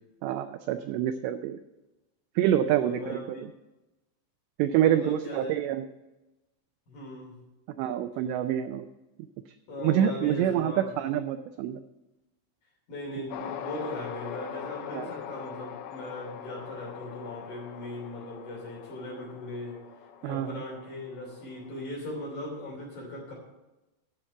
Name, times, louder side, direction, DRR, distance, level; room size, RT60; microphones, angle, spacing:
voice 1, 0.2-1.6 2.4-3.5 4.6-5.9 7.8-8.9 9.8-11.8 13.2-13.3 14.9-15.1 20.2-20.6, right 11 dB, 90° right, 9 dB, 2.5 m, -27 dB
voice 2, 2.6-3.4 4.8-5.5 6.9-7.4 9.7-10.9 12.9-19.8 20.2-23.3, left 1 dB, 50° left, -4 dB, 4.3 m, -39 dB
sound 1, 13.3-21.8, left 8 dB, 75° left, 2.7 m, -42 dB
10.0 x 5.9 x 8.6 m, 1.0 s
omnidirectional pair, 5.5 m